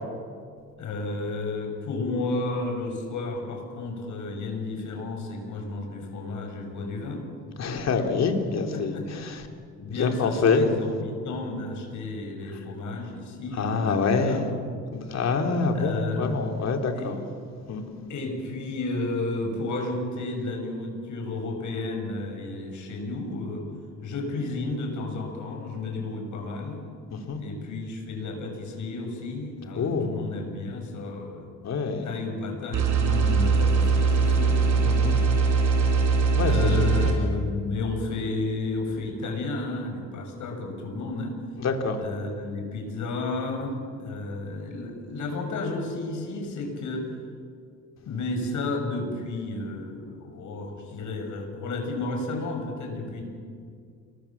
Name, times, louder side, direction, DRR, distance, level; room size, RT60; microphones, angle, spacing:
voice 1, 0.8-7.2 8.7-9.1 9.8-14.5 15.7-16.4 16.9-17.2 18.1-23.7 24.0-26.8 27.4-31.5 32.0-34.6 36.4-41.3 42.0-47.1 48.0-53.2, left 2 dB, 75° left, 3 dB, 6.6 m, -32 dB
voice 2, 7.6-8.9 9.3-9.4 10.0-10.7 13.6-14.4 14.9-17.2 17.7-17.8 27.1-27.4 29.7-30.1 31.6-32.1 35.0-35.1 36.4-37.1 41.6-42.0, left 4 dB, 60° left, 4 dB, 3.4 m, -26 dB
sound 1, 32.7-37.1, right 4 dB, 80° right, 5.5 m, -21 dB
28.5 x 23.0 x 7.4 m, 2.2 s
cardioid pair, 90°, 30 cm